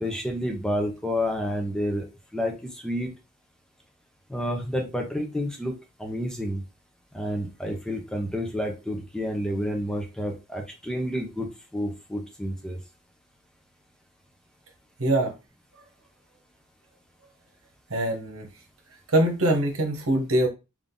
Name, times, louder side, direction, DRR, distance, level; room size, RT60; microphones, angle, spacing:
voice 1, 0.0-2.1 2.3-3.1 4.3-5.7 6.0-6.6 7.1-12.8, equal, 5° left, 2 dB, 0.7 m, -29 dB
voice 2, 15.0-15.3 17.9-18.5 19.1-20.5, right 1 dB, 75° right, 3 dB, 1.2 m, -23 dB
3.7 x 2.5 x 3.8 m, 0.26 s
head